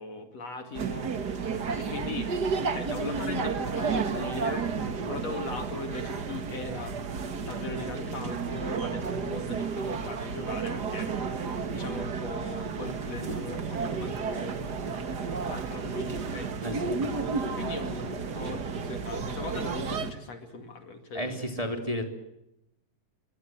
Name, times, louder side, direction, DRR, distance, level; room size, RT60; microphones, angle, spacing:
voice 1, 0.0-4.8 5.1-7.0 7.4-11.1 11.4-16.5 17.6-21.4, left 3 dB, 50° left, 6 dB, 3.3 m, -39 dB
sound 1, 0.8-20.1, right 5 dB, 40° right, 1.5 m, -32 dB
voice 2, 16.6-17.0 21.1-22.0, equal, 10° right, 4 dB, 3.2 m, -32 dB
27.0 x 23.5 x 7.9 m, 0.86 s
omnidirectional pair, 3.9 m